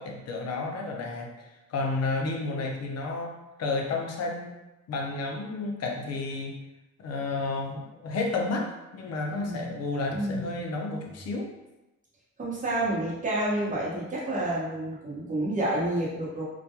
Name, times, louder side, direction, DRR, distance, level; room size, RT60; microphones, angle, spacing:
voice 1, 0.0-4.6 4.9-6.6 7.0-11.5, left 3 dB, 55° left, 1 dB, 0.6 m, -31 dB
voice 2, 9.3-9.8 10.1-10.6 12.4-16.4, right 1 dB, 25° right, -5 dB, 0.9 m, -29 dB
2.3 x 2.1 x 2.8 m, 0.99 s
cardioid pair, 90°, 30 cm